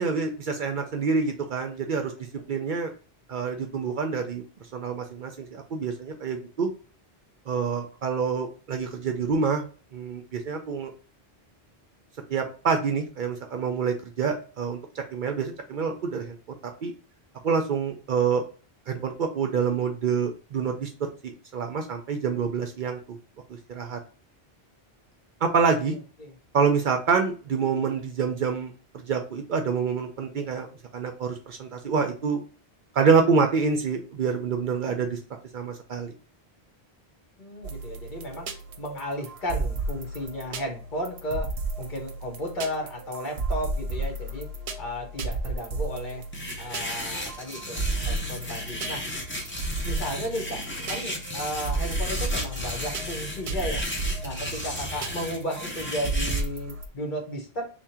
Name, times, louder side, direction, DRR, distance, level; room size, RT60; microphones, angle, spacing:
voice 1, 0.0-2.1 2.5-2.9 3.3-4.4 4.7-6.7 7.5-9.6 9.9-10.9 12.3-16.4 16.8-16.9 17.4-18.4 18.9-23.0 23.7-24.0 25.4-25.9 26.5-30.7 30.9-32.4 32.9-35.2 35.5-36.1, right 5 dB, 60° right, 4 dB, 0.6 m, -26 dB
voice 2, 37.4-38.5 38.8-41.5 41.8-44.5 44.8-46.2 46.6-49.0 49.8-50.6 50.9-53.8 54.2-57.6, equal, 50° left, 1 dB, 1.1 m, -34 dB
sound 1, 37.6-56.9, right 2 dB, 85° right, 0.9 m, -33 dB
sound 2, 46.3-56.4, left 1 dB, 15° left, 0.6 m, -34 dB
3.5 x 2.2 x 4.2 m, 0.38 s
omnidirectional pair, 1.0 m